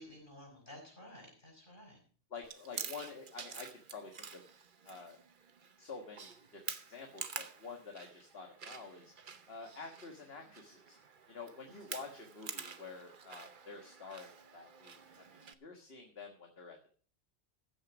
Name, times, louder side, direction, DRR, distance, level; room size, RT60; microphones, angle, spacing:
voice 1, 0.0-2.0 11.8-11.9, left 1 dB, 50° left, 0 dB, 5.8 m, -53 dB
voice 2, 2.3-4.4 4.8-5.2 5.8-6.6 6.9-9.1 9.5-11.0 11.3-14.9 15.3-16.9, left 4 dB, 65° left, 3 dB, 1.8 m, -49 dB
Chewing mastication, 2.4-15.5, right 6 dB, 50° right, 1.0 m, -48 dB
15.0 x 6.5 x 6.0 m, 0.43 s
omnidirectional pair, 1.1 m